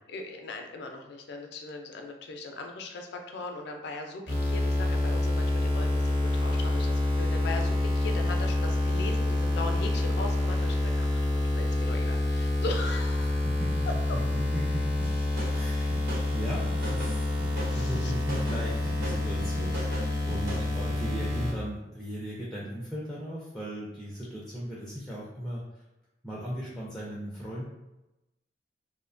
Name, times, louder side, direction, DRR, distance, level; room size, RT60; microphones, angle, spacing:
voice 1, 0.1-11.1 11.4-13.5 17.6-18.1, left 3 dB, 65° left, 3 dB, 0.4 m, -39 dB
sound 1, 4.3-21.5, left 1 dB, 30° right, 0.8 m, -27 dB
voice 2, 13.2-13.9 14.1-14.8 15.5-16.0 16.3-17.3 17.7-25.8 26.2-27.6, equal, ahead, -7 dB, 0.4 m, -37 dB
sound 2, 15.0-20.7, equal, 60° right, 1.0 m, -39 dB
2.7 x 2.1 x 2.5 m, 0.97 s
head